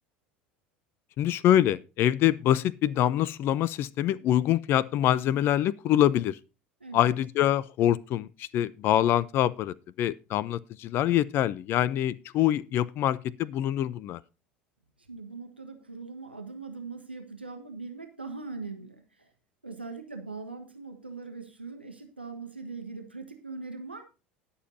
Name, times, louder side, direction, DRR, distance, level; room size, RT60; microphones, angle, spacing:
voice 1, 1.2-6.4 6.9-14.2, left 12 dB, 45° left, 0.5 m, -25 dB
voice 2, 6.8-7.2 15.1-19.3 19.6-24.0, right 4 dB, 90° right, 1.3 m, -41 dB
19.5 x 7.2 x 2.7 m
figure-of-eight pair, 70°, 6 cm